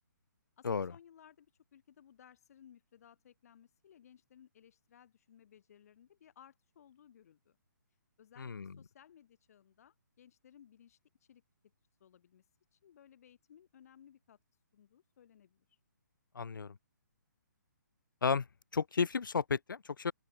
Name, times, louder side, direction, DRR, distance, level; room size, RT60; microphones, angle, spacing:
voice 1, 0.6-7.6 8.2-11.4 12.0-14.4 14.7-15.8, left 9 dB, 50° left, 5.5 m, -61 dB
voice 2, 8.4-8.7 16.3-16.8 18.2-18.5 18.7-20.1, left 5 dB, 85° left, 0.7 m, -33 dB
open air
hypercardioid pair, 150°, 11 cm